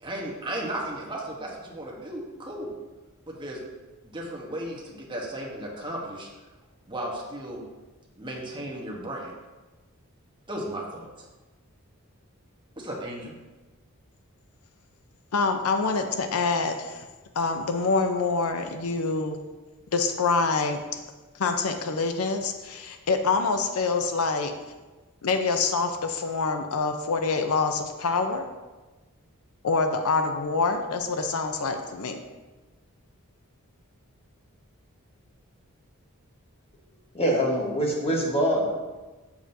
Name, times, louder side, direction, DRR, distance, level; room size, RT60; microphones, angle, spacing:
voice 1, 0.0-2.7 3.3-3.6 4.0-6.3 6.9-7.6 8.2-9.3 10.5-11.1 12.8-13.3, right 1 dB, 20° right, -2 dB, 1.1 m, -35 dB
voice 2, 15.3-17.0 17.4-19.4 19.9-21.0 21.4-24.5 25.2-28.4 29.6-32.2, left 4 dB, 75° left, 6 dB, 0.6 m, -26 dB
voice 3, 37.1-39.0, equal, 25° left, -2 dB, 1.3 m, -25 dB
7.4 x 7.1 x 2.7 m, 1.2 s
head